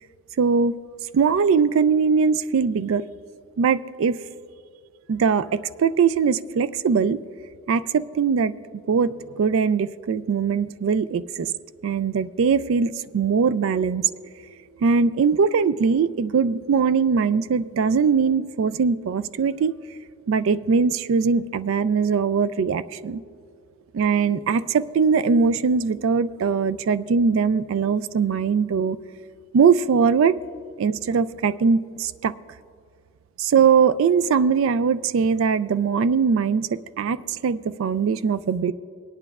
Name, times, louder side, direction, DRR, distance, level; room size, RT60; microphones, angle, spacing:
voice 1, 0.4-0.8 1.1-3.0 3.6-4.2 5.1-7.2 7.7-8.5 8.9-11.5 11.8-14.0 14.8-19.7 20.3-23.2 23.9-29.0 29.5-30.4 30.8-32.3 33.4-36.7 37.0-38.7, right 5 dB, 60° right, 15 dB, 0.3 m, -21 dB
22.5 x 9.1 x 2.4 m, 2.2 s
head